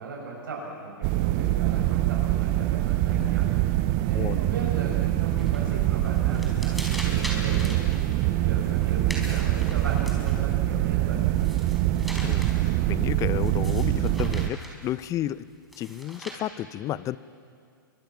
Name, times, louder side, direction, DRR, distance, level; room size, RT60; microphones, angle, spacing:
voice 1, 0.0-3.5 4.1-7.6 8.2-11.2, right 3 dB, 75° right, -3 dB, 7.5 m, -37 dB
sound 1, 1.0-14.5, right 15 dB, 40° right, 0.8 m, -24 dB
sound 2, 5.4-5.8 6.1-10.5 11.1-12.7 13.4-14.9 15.7-16.4, equal, ahead, 4.6 m, -40 dB
voice 2, 12.2-15.4 15.8-17.2, left 13 dB, 30° left, 19 dB, 0.6 m, -32 dB
29.0 x 24.0 x 6.0 m, 2.3 s
hypercardioid pair, 115°, 11 cm